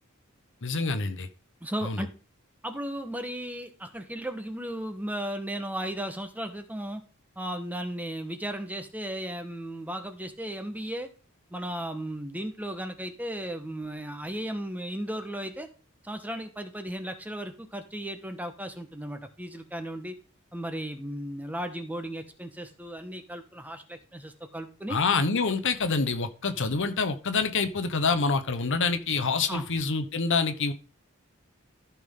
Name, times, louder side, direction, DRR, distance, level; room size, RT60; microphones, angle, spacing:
voice 1, 0.6-1.3 1.8-2.0 24.9-30.7, left 4 dB, 60° left, 10 dB, 1.0 m, -26 dB
voice 2, 1.6-2.1 2.6-7.0 7.4-11.1 11.5-15.7 16.0-20.2 20.5-25.0 29.5-29.7, right 1 dB, 10° right, 7 dB, 1.1 m, -35 dB
13.5 x 6.0 x 3.7 m, 0.35 s
head